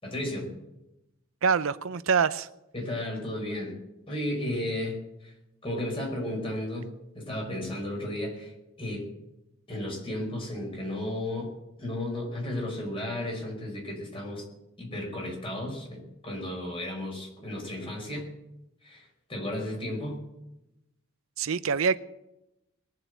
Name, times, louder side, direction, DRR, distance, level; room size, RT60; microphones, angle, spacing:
voice 1, 0.0-0.5 2.7-3.8 4.1-5.3 5.6-8.5 8.8-9.1 9.7-11.5 11.8-14.5 14.8-18.3 18.8-20.2, left 1 dB, 25° left, 5.5 m, -34 dB
voice 2, 1.4-2.5 21.4-22.0, right 6 dB, 75° right, 0.6 m, -25 dB
21.0 x 7.7 x 8.1 m
head